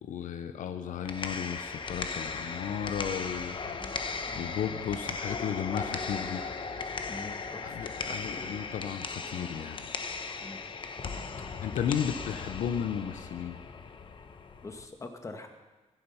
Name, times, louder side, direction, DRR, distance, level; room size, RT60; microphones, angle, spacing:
voice 1, 0.0-3.8 4.4-6.4 7.6-9.9 11.6-13.6, left 8 dB, 90° left, 9 dB, 0.8 m, -34 dB
sound 1, 0.9-14.9, left 4 dB, 40° left, 0.9 m, -37 dB
voice 2, 7.1-7.7 8.1-8.5 10.4-10.6 11.1-11.2 14.6-15.5, left 3 dB, 25° left, 5 dB, 1.3 m, -44 dB
14.5 x 10.0 x 5.7 m, 1.2 s
wide cardioid pair, 130°, 13 cm